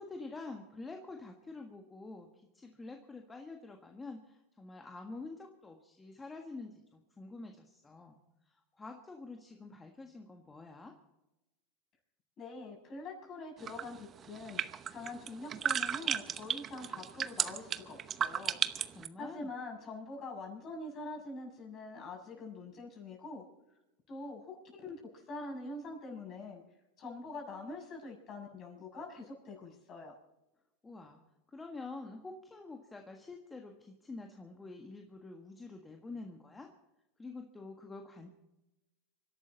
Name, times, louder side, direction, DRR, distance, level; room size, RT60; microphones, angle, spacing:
voice 1, 0.0-2.3 2.5-8.2 8.5-10.9 18.9-19.5 30.8-31.2 31.5-36.7 37.2-38.3, left 3 dB, 15° left, 3 dB, 1.6 m, -47 dB
voice 2, 12.4-14.6 14.9-18.6 19.2-23.4 24.1-26.6 27.0-30.1, left 2 dB, 40° left, 1 dB, 6.7 m, -44 dB
sound 1, 13.6-19.1, right 8 dB, 30° right, 0.8 m, -34 dB
25.5 x 12.0 x 4.1 m, 0.96 s
hypercardioid pair, 110°, 0 cm